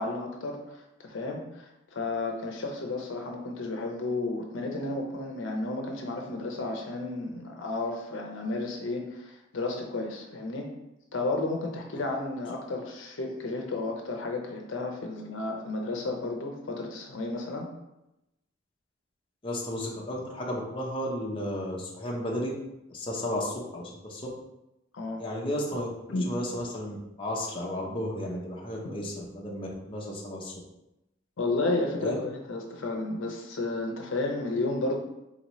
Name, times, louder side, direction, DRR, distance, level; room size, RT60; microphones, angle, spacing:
voice 1, 0.0-10.7 11.1-17.7 24.9-25.2 26.1-26.3 31.4-34.9, left 2 dB, 70° left, 2 dB, 0.6 m, -32 dB
voice 2, 19.4-22.5 22.9-24.2 25.2-25.9 26.3-30.5 32.0-32.2, left 1 dB, 25° left, -3 dB, 0.6 m, -33 dB
4.2 x 2.9 x 3.0 m, 0.90 s
head